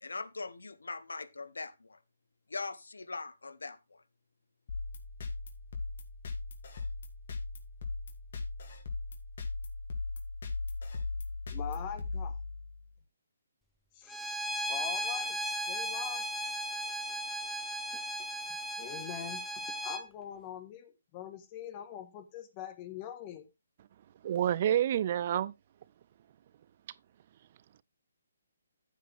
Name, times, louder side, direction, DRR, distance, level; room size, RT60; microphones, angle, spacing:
voice 1, 0.0-1.9 2.5-3.8, left 3 dB, 85° left, 1.0 m, -40 dB
sound 1, 4.7-12.9, left 3 dB, 55° left, 2.6 m, -38 dB
voice 2, 11.5-12.3 13.9-15.4 15.7-16.3 17.9-18.0 18.8-19.4 19.8-23.5, left 10 dB, 25° left, 1.5 m, -43 dB
Bowed string instrument, 14.1-20.0, right 1 dB, ahead, 0.8 m, -36 dB
voice 3, 24.2-25.5, right 10 dB, 40° right, 0.5 m, -28 dB
14.5 x 5.0 x 3.5 m
hypercardioid pair, 150°, 0 cm